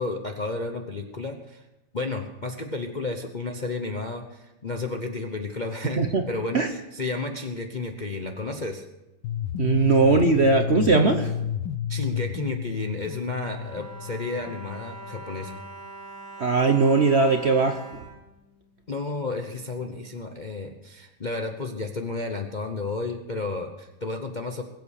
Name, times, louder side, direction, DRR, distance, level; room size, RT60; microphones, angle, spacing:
voice 1, 0.0-1.6 1.9-8.9 11.9-15.6 18.9-24.6, left 3 dB, 35° left, 4 dB, 0.7 m, -32 dB
sound 1, 9.2-15.2, left 9 dB, 80° left, 1.5 m, -31 dB
voice 2, 9.6-11.3 16.4-18.0, right 4 dB, 45° right, 5 dB, 0.9 m, -20 dB
Bowed string instrument, 12.8-19.1 19.8-19.9 20.2-20.3, right 2 dB, 90° right, 5.5 m, -43 dB
21.0 x 8.3 x 6.6 m, 0.97 s
omnidirectional pair, 2.1 m